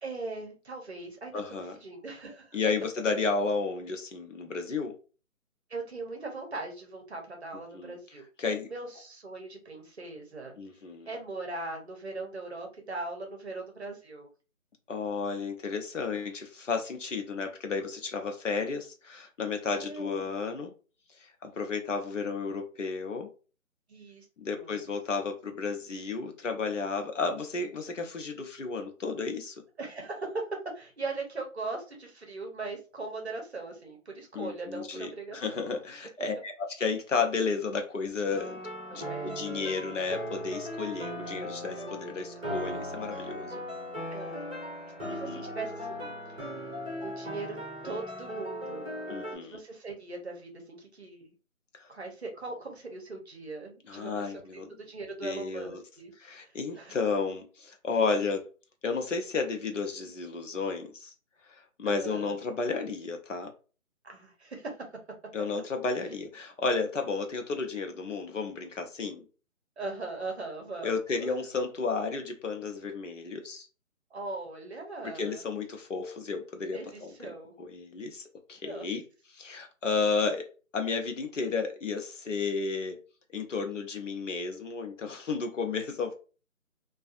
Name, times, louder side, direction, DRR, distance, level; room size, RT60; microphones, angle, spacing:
voice 1, 0.0-1.5 1.8-2.6 5.7-10.5 11.1-14.3 19.7-20.3 23.9-24.3 24.5-24.8 29.8-35.7 38.9-39.4 41.8-41.9 42.3-42.4 44.1-44.5 45.1-46.4 47.0-47.6 47.8-48.9 49.4-51.3 51.9-54.4 54.8-57.0 61.9-62.4 64.0-64.9 69.8-71.3 74.1-75.4 76.7-77.5 78.6-78.9, right 3 dB, 50° right, 0.8 m, -40 dB
voice 2, 1.3-1.7 2.5-4.9 7.7-7.9 8.4-8.7 10.6-11.1 14.9-20.7 21.2-23.3 24.4-29.6 34.3-38.5 38.9-43.6 45.0-45.5 49.1-49.6 51.7-51.9 53.9-54.7 55.2-55.8 56.2-58.4 58.8-61.1 61.5-63.5 65.3-69.2 70.8-73.7 75.2-79.0 79.3-80.4 80.7-83.0 83.3-86.1, left 4 dB, 60° left, 0.7 m, -32 dB
sound 1, 38.3-49.4, equal, 10° right, 1.1 m, -38 dB
2.5 x 2.3 x 2.5 m
hypercardioid pair, 175°, 41 cm